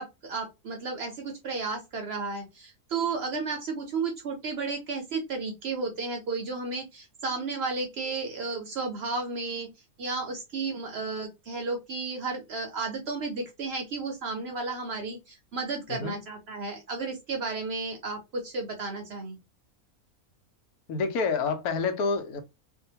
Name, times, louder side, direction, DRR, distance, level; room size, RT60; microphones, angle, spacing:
voice 1, 0.0-9.7 10.0-19.4, right 4 dB, 60° right, 0.7 m, -33 dB
voice 2, 20.9-22.4, left 4 dB, 90° left, 1.1 m, -28 dB
2.7 x 2.2 x 2.7 m
omnidirectional pair, 1.5 m